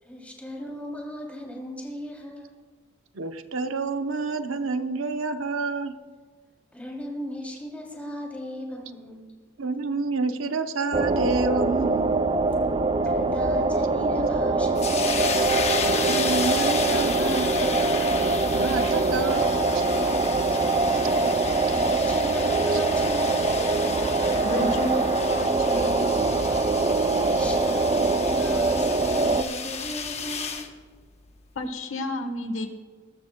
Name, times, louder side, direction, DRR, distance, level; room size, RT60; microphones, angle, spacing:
voice 1, 0.0-2.5 6.7-9.3 13.0-15.4 21.4-23.7 27.2-30.7, equal, 5° left, -1 dB, 3.1 m, -37 dB
voice 2, 3.1-5.9 9.6-12.1 15.8-18.3 18.5-19.5 19.7-19.8 22.7-22.8, right 3 dB, 85° right, 8 dB, 0.8 m, -29 dB
sound 1, 10.9-29.4, right 3 dB, 25° right, 0.5 m, -23 dB
sound 2, 14.8-30.7, left 6 dB, 35° left, 1.0 m, -33 dB
voice 3, 24.4-26.2 31.5-32.7, left 1 dB, 75° left, 7 dB, 1.3 m, -31 dB
21.0 x 13.0 x 2.3 m, 1.5 s
head